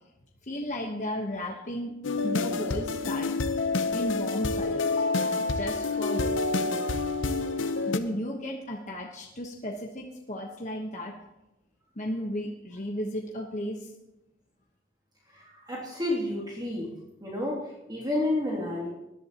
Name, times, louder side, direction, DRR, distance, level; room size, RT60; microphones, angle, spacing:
voice 1, 0.5-1.9 2.2-3.3 3.9-5.0 5.5-6.4 7.9-11.1 12.0-13.9, equal, 40° left, 0 dB, 1.2 m, -34 dB
sound 1, 2.0-8.0, left 3 dB, 75° left, 0.8 m, -28 dB
voice 2, 15.3-16.9 17.2-17.6 17.9-18.9, left 1 dB, 20° right, -5 dB, 2.8 m, -30 dB
20.5 x 11.0 x 3.0 m, 0.93 s
head